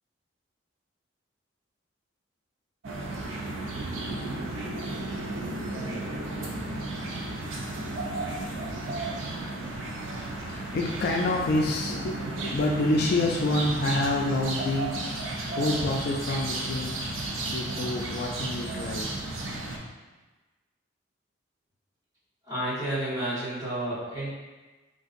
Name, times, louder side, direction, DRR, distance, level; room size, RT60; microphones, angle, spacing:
sound 1, 2.8-19.8, right 2 dB, 85° right, 0.5 m, -33 dB
voice 1, 10.5-14.9 15.5-17.2 17.5-19.2, left 2 dB, 55° left, 0 dB, 0.3 m, -27 dB
voice 2, 22.5-24.3, right 1 dB, 20° right, -13 dB, 1.4 m, -30 dB
3.7 x 2.6 x 2.5 m, 1.2 s
head